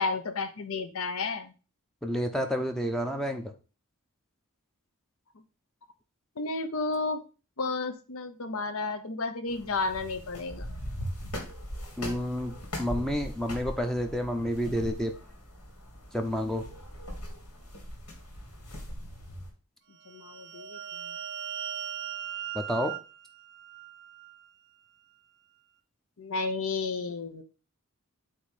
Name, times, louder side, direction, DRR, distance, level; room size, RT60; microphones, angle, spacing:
voice 1, 0.0-1.5 6.4-7.2 7.6-10.8 20.1-21.1 26.2-27.4, left 3 dB, 65° left, 8 dB, 0.8 m, -32 dB
voice 2, 2.0-3.5 12.0-15.1 16.1-16.6 22.5-22.9, equal, ahead, 4 dB, 0.6 m, -30 dB
sound 1, 9.5-19.5, equal, 80° left, 2.5 m, -40 dB
sound 2, 20.0-24.5, right 9 dB, 50° right, 0.6 m, -39 dB
8.4 x 2.8 x 5.1 m, 0.33 s
head